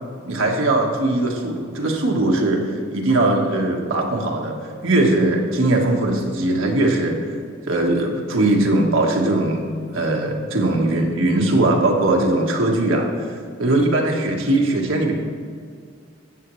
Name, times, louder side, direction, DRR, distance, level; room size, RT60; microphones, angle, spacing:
voice 1, 0.3-4.6 4.8-7.4 7.7-13.3 13.6-15.1, right 2 dB, 85° right, 0 dB, 1.5 m, -20 dB
13.5 x 8.5 x 3.2 m, 2.1 s
head